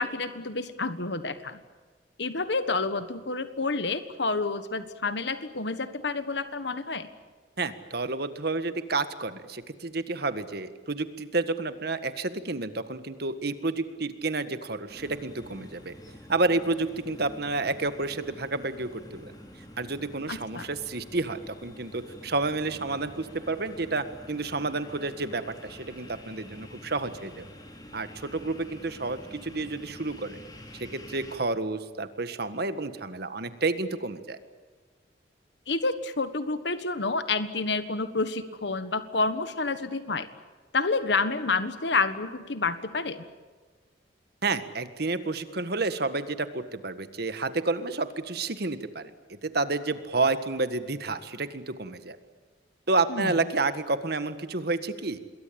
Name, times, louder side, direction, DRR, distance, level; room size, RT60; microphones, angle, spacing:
voice 1, 0.0-1.6 2.2-7.1 20.3-20.7 35.7-40.3 40.7-43.2 53.1-53.3, left 3 dB, 70° left, 11 dB, 1.5 m, -29 dB
voice 2, 7.6-15.9 16.3-19.3 19.8-27.4 27.9-30.4 30.7-34.4 44.4-52.2 52.9-55.2, right 3 dB, 60° right, 11 dB, 1.7 m, -30 dB
sound 1, 14.9-31.4, left 1 dB, 20° left, 4.0 m, -47 dB
27.5 x 21.5 x 8.7 m, 1.4 s
head